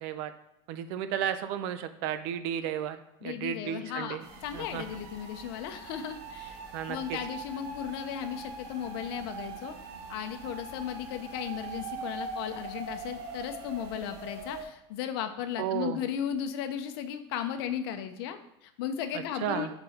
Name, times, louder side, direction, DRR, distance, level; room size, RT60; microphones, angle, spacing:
voice 1, 0.0-0.3 0.7-4.2 4.5-4.8 6.7-7.0 15.6-16.0 19.4-19.7, right 10 dB, 45° right, 11 dB, 0.5 m, -33 dB
voice 2, 3.2-6.6 6.9-9.8 10.1-19.7, left 9 dB, 65° left, 8 dB, 0.6 m, -36 dB
sound 1, 4.2-14.7, right 3 dB, 70° right, 1.3 m, -42 dB
5.6 x 4.0 x 4.4 m, 0.88 s
cardioid pair, 180°, 14 cm